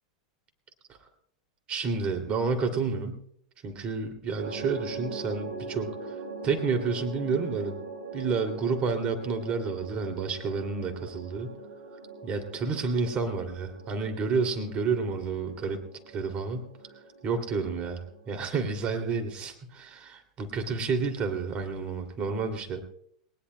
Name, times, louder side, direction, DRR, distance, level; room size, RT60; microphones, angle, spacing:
voice 1, 1.7-3.2 3.6-5.9 6.4-7.8 8.1-11.6 12.2-16.7 17.2-22.9, right 4 dB, 35° right, 6 dB, 2.6 m, -30 dB
sound 1, 4.4-18.3, right 3 dB, 85° right, 6.0 m, -42 dB
21.0 x 19.5 x 2.2 m, 0.66 s
hypercardioid pair, 95°, 3 cm